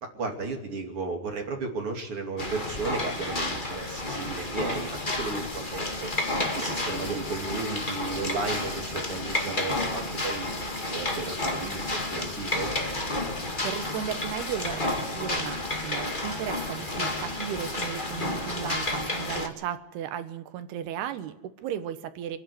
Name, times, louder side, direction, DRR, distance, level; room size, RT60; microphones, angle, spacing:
voice 1, 0.0-6.1 6.5-12.7, right 4 dB, 35° right, 3 dB, 3.0 m, -34 dB
sound 1, 2.4-19.5, left 2 dB, 55° left, 0.5 m, -31 dB
voice 2, 13.4-22.4, right 9 dB, 75° right, 10 dB, 3.1 m, -35 dB
25.5 x 11.0 x 9.7 m, 0.92 s
omnidirectional pair, 4.8 m